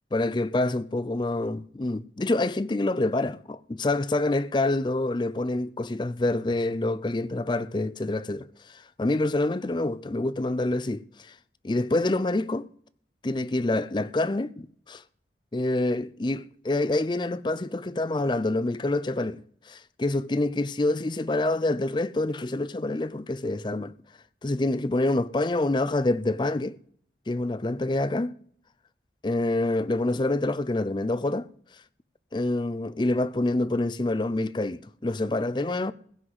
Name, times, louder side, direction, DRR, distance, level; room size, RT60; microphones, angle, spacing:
voice 1, 0.1-11.3 11.6-12.7 13.2-15.0 15.5-23.9 24.4-26.8 27.3-28.3 29.2-31.5 32.3-35.9, left 2 dB, 25° left, 0.5 m, -27 dB
16.0 x 6.2 x 7.9 m
head